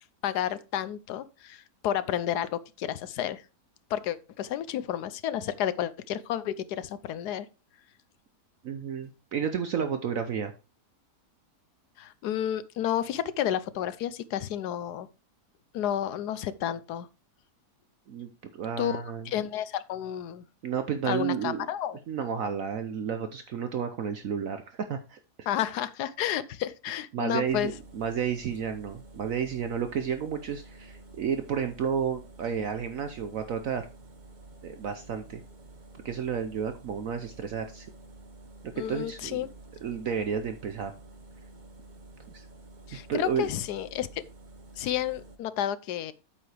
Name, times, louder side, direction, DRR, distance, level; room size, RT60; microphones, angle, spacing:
voice 1, 0.2-3.4 3.9-7.5 12.0-15.1 15.7-17.1 18.8-20.4 21.1-22.0 25.5-27.7 38.8-39.5 42.9-44.2 44.8-46.1, left 11 dB, 80° left, 1.2 m, -31 dB
voice 2, 8.6-10.5 18.1-19.4 20.6-21.7 22.1-24.6 24.9-25.2 27.1-33.9 34.6-35.4 36.0-37.9 38.8-39.5 39.8-40.9 42.3-42.5 42.9-43.5, right 7 dB, 60° right, 1.1 m, -31 dB
sound 1, 27.5-45.4, right 2 dB, 35° right, 0.9 m, -50 dB
8.6 x 7.2 x 3.3 m
omnidirectional pair, 1.8 m